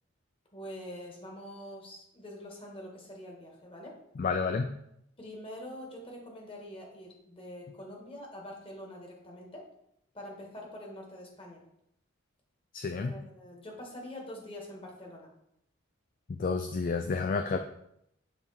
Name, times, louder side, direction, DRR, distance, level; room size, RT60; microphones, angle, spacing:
voice 1, 0.5-4.0 5.2-9.7 10.1-11.6 13.0-15.3, left 1 dB, 25° left, -1 dB, 1.5 m, -45 dB
voice 2, 4.2-4.7 12.7-13.1 16.3-17.6, left 4 dB, 40° left, 6 dB, 0.3 m, -30 dB
7.0 x 3.5 x 4.2 m, 0.78 s
head